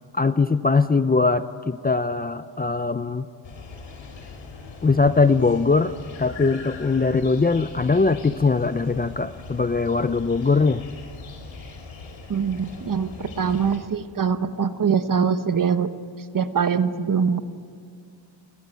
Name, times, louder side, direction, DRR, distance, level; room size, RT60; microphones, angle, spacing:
voice 1, 0.1-3.3 4.8-5.9 6.2-10.8, left 4 dB, 20° left, 12 dB, 0.6 m, -21 dB
sound 1, 3.4-13.8, left 4 dB, 70° left, 4.9 m, -40 dB
voice 2, 12.3-15.9 16.3-17.4, right 6 dB, 40° right, 10 dB, 1.2 m, -23 dB
28.5 x 20.0 x 9.2 m, 2.4 s
cardioid pair, 100°, 47 cm